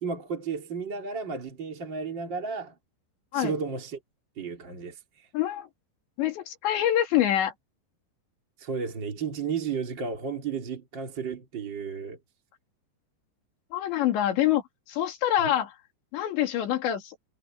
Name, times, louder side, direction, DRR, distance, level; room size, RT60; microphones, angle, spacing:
voice 1, 0.0-2.7 3.3-4.0 4.4-5.3 8.6-12.2 15.4-15.5, right 5 dB, 30° right, 3.0 m, -33 dB
voice 2, 5.3-5.7 6.2-7.5 13.7-14.6 14.9-15.7 16.1-17.2, left 11 dB, 70° left, 4.8 m, -25 dB
omnidirectional pair, 5.3 m